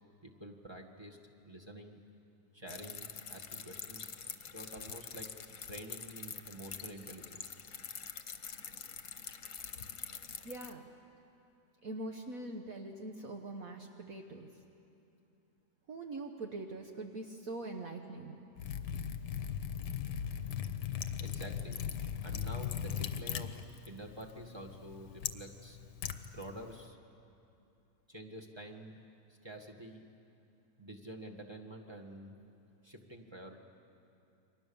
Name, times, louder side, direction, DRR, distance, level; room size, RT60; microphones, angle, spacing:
voice 1, 0.2-2.0 2.5-4.2 4.5-5.3 5.7-7.6 21.2-21.8 22.2-25.8 26.3-27.0 28.1-29.0 29.4-30.0 30.8-32.4 32.8-33.6, right 1 dB, 15° right, 2 dB, 1.7 m, -48 dB
sound 1, 2.7-10.7, left 7 dB, 50° left, 1.4 m, -46 dB
voice 2, 10.4-10.8 11.8-14.5 15.9-18.4, right 2 dB, 60° right, 3 dB, 1.6 m, -43 dB
Liquid, 18.6-26.8, left 8 dB, 90° left, 1.6 m, -39 dB
29.5 x 23.5 x 7.1 m, 2.7 s
omnidirectional pair, 1.8 m